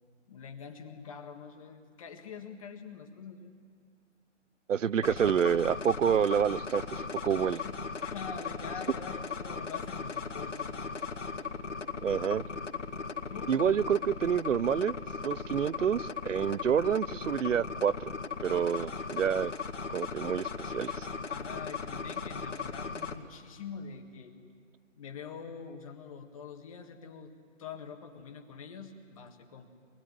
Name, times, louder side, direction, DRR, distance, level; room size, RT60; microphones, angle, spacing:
voice 1, 0.3-3.6 7.6-7.8 8.0-10.9 13.3-13.9 21.3-24.3 24.9-29.7, left 6 dB, 25° left, 3 dB, 1.7 m, -45 dB
voice 2, 4.7-7.6 12.0-12.4 13.5-14.9 15.2-17.9 18.4-19.5 19.9-21.1, right 8 dB, 80° right, 20 dB, 0.7 m, -28 dB
sound 1, 5.0-23.2, left 5 dB, 70° left, 2.1 m, -37 dB
24.0 x 21.0 x 9.6 m, 2.3 s
hypercardioid pair, 155°, 37 cm